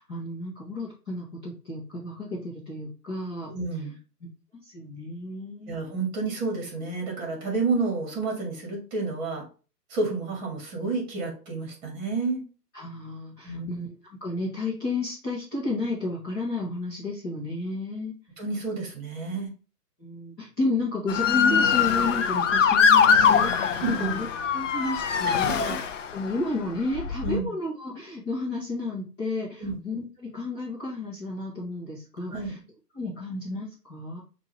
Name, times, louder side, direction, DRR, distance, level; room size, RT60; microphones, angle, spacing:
voice 1, 0.0-3.5 4.2-4.3 4.6-5.8 12.7-13.9 14.2-18.1 20.0-24.3 24.5-25.7 26.1-32.6 32.9-34.2, left 2 dB, 15° left, -7 dB, 0.9 m, -32 dB
voice 2, 3.5-4.0 5.6-9.4 9.9-12.4 13.4-13.8 18.4-19.5 23.8-24.2 25.2-25.8 27.2-27.5 29.6-29.8 32.3-32.5, right 3 dB, 25° right, 1 dB, 1.8 m, -30 dB
Motor vehicle (road) / Siren, 21.1-26.3 27.0-27.4, left 7 dB, 50° left, 0.6 m, -22 dB
6.3 x 2.6 x 3.1 m, 0.35 s
hypercardioid pair, 155°, 49 cm